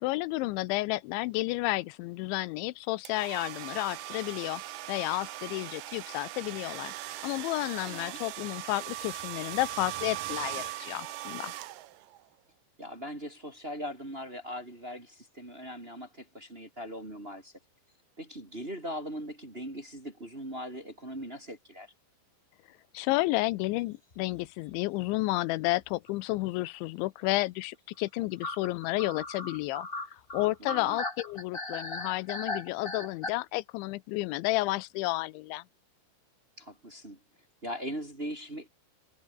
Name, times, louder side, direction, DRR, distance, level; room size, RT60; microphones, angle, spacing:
voice 1, 0.0-4.6 4.9-6.9 7.2-11.5 22.9-29.9 30.3-35.6, left 20 dB, 90° left, 3.0 m, -31 dB
sound 1, 3.0-12.2, right 15 dB, 75° right, 2.0 m, -40 dB
voice 2, 7.8-8.2 12.8-17.5 18.2-21.9 30.6-31.0 36.6-37.2 37.6-38.7, equal, 15° right, 2.5 m, -40 dB
sound 2, 24.1-24.4 24.7-24.8 25.0-25.1 26.1-26.3 28.4-33.3, left 2 dB, 15° left, 2.3 m, -37 dB
omnidirectional pair, 5.3 m